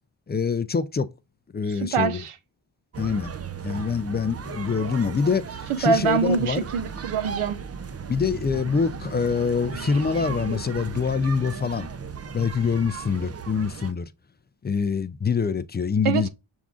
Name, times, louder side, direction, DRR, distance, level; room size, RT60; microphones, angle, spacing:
voice 1, 0.3-1.1 1.5-2.2 3.0-3.3 3.6-6.7 8.1-11.9 12.3-14.1 14.6-16.3, left 5 dB, 25° left, 0.3 m, -25 dB
voice 2, 1.8-2.3 5.7-7.6 16.0-16.3, right 6 dB, 80° right, 0.7 m, -24 dB
sound 1, 2.9-13.9, right 6 dB, 30° right, 0.5 m, -36 dB
6.2 x 3.6 x 2.4 m
cardioid pair, 60°, 50 cm